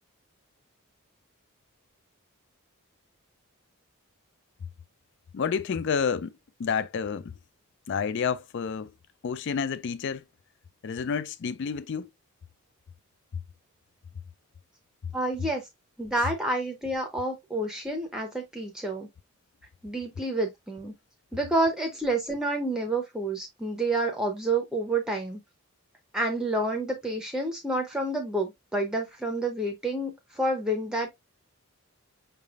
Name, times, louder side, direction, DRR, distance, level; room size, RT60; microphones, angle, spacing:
voice 1, 5.3-7.4 7.9-8.9 9.2-10.2 10.8-12.1 13.3-13.4 15.0-15.1 16.2-16.3, left 6 dB, 55° left, 0.4 m, -30 dB
voice 2, 15.1-15.6 16.0-19.1 19.8-20.9 21.3-25.4 26.1-31.1, right 2 dB, 5° right, 0.6 m, -29 dB
5.5 x 3.4 x 2.4 m
head